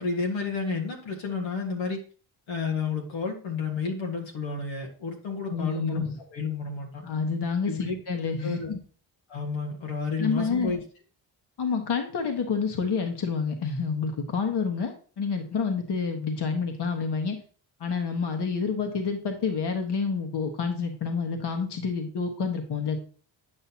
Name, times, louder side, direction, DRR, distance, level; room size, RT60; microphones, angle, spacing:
voice 1, 0.0-2.0 2.5-7.0 7.7-8.0 8.4-8.7 9.3-10.8, left 4 dB, 90° left, 1 dB, 1.6 m, -31 dB
voice 2, 5.5-6.2 7.0-8.8 10.2-10.7 11.6-17.4 17.8-23.0, left 5 dB, 60° left, 4 dB, 1.4 m, -28 dB
8.9 x 5.6 x 2.8 m, 0.40 s
cardioid pair, 70°, 47 cm